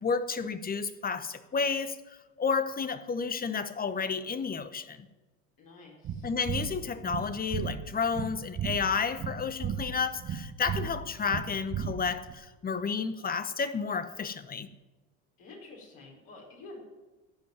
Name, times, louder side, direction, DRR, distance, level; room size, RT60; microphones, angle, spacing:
voice 1, 0.0-5.1 6.2-14.7, left 5 dB, 25° left, 0.9 m, -31 dB
voice 2, 5.6-6.3 15.4-16.8, left 2 dB, 60° left, 4.9 m, -49 dB
sound 1, 6.0-12.3, right 8 dB, 40° right, 1.1 m, -35 dB
14.0 x 5.5 x 9.3 m
hypercardioid pair, 80°, 39 cm